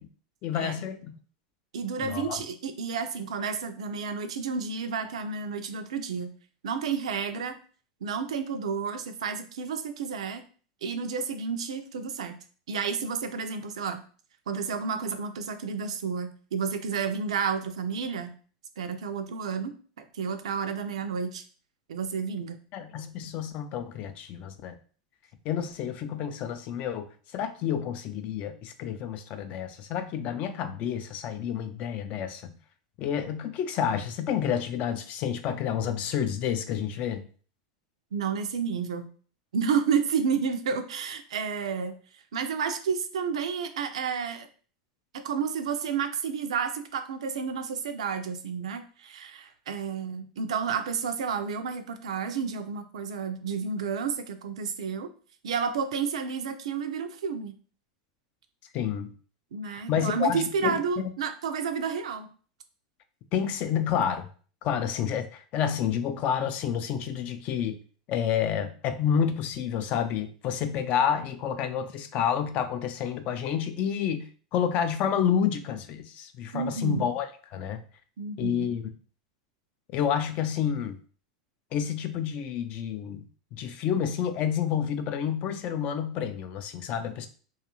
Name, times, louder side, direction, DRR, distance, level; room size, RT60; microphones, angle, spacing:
voice 1, 0.4-1.1 2.0-2.4 22.7-24.8 25.4-32.6 33.0-37.3 58.7-59.1 59.6-60.8 63.3-64.3 64.6-67.8 68.1-77.8 78.4-78.8 79.9-81.0 81.7-87.3, left 8 dB, 45° left, 9 dB, 0.4 m, -29 dB
voice 2, 1.7-6.3 6.6-7.6 8.0-10.4 10.8-12.4 12.7-14.0 14.5-18.3 18.8-19.7 20.0-21.4 21.9-22.6 38.1-39.1 39.5-44.5 45.1-55.1 55.4-57.5 59.5-62.3 76.5-77.1 78.2-78.7, right 6 dB, 85° right, 8 dB, 0.4 m, -31 dB
2.4 x 2.3 x 2.9 m, 0.41 s
hypercardioid pair, 115°, 3 cm